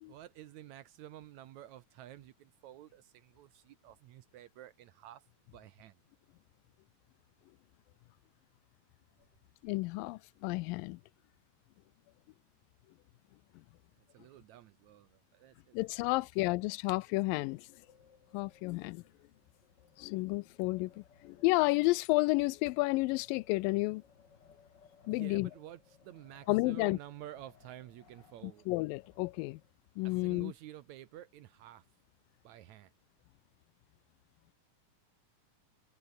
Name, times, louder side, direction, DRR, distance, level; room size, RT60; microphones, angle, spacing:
voice 1, 0.1-5.2 5.5-6.0 14.1-16.3 25.1-28.7 30.0-31.9 32.4-32.9, right 13 dB, 70° right, 1.9 m, -51 dB
voice 2, 9.6-11.0 15.7-17.6 18.3-19.0 20.0-24.0 25.1-25.5 26.5-27.0 28.7-29.6 30.0-30.5, left 22 dB, 90° left, 2.3 m, -31 dB
Wind, 17.5-30.0, left 6 dB, 40° left, 2.1 m, -64 dB
omnidirectional pair, 3.9 m